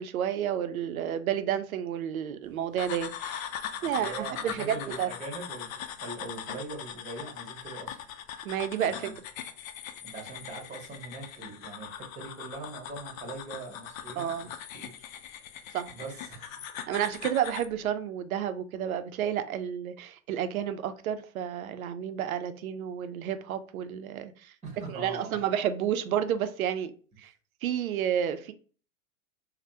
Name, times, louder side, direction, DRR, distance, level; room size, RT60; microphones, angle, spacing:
voice 1, 0.0-3.5 3.8-5.1 8.4-9.1 14.2-14.5 15.7-15.9 16.9-24.5 24.9-26.9 27.2-27.3 27.6-28.5, right 9 dB, 80° right, 0.5 m, -31 dB
sound 1, 2.8-17.7, left 9 dB, 70° left, 0.5 m, -40 dB
voice 2, 3.8-8.0 8.8-9.2 10.0-14.9 15.9-16.5 24.6-25.4, right 3 dB, 15° right, 1.2 m, -42 dB
3.2 x 2.1 x 2.7 m
hypercardioid pair, 105°, 42 cm